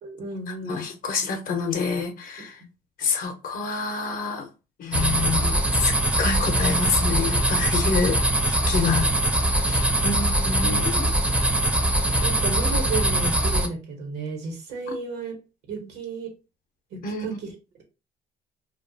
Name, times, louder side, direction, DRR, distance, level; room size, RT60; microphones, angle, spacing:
voice 1, 0.0-0.9 9.7-10.4 12.2-15.4 15.7-16.3 16.9-17.5, right 4 dB, 80° right, 1.0 m, -33 dB
voice 2, 0.6-2.6 3.0-4.5 4.8-8.2 8.5-9.1 9.5-11.1 17.0-17.4, left 5 dB, 55° left, 0.6 m, -27 dB
sound 1, 4.9-13.7, right 1 dB, 10° right, 0.5 m, -22 dB
2.3 x 2.3 x 2.6 m
cardioid pair, 110°, 17 cm